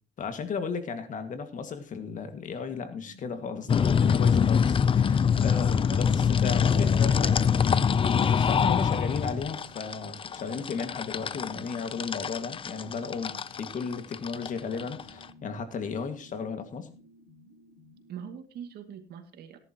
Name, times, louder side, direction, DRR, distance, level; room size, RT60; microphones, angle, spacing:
voice 1, 0.2-7.5 8.1-16.9, left 5 dB, 50° left, 8 dB, 2.0 m, -35 dB
sound 1, 2.6-18.2, left 2 dB, 90° left, 5.0 m, -54 dB
sound 2, 3.7-15.2, left 7 dB, 30° left, 0.6 m, -24 dB
voice 2, 5.3-7.7 18.1-19.6, right 8 dB, 70° right, 6 dB, 2.4 m, -44 dB
18.0 x 11.0 x 3.0 m, 0.35 s
cardioid pair, 110°, 17 cm